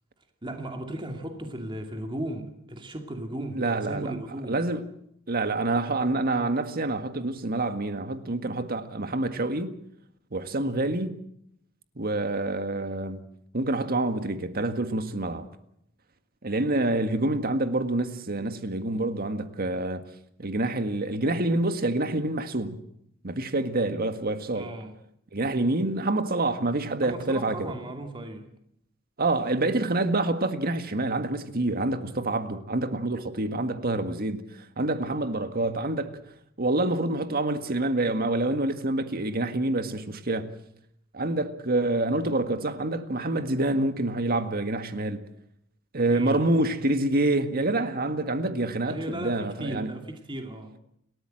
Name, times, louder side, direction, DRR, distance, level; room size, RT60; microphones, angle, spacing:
voice 1, 0.4-4.6 24.5-24.9 27.0-28.5 46.1-46.4 48.8-50.7, right 1 dB, 25° right, 2.5 m, -36 dB
voice 2, 3.5-4.1 4.5-4.9 5.3-9.7 10.3-11.2 12.0-13.2 13.5-15.5 16.4-20.0 20.4-22.8 23.2-24.7 25.3-27.7 29.2-36.2 36.6-40.5 41.1-45.2 45.9-49.9, right 2 dB, 50° right, 1.8 m, -27 dB
30.0 x 13.5 x 7.8 m
head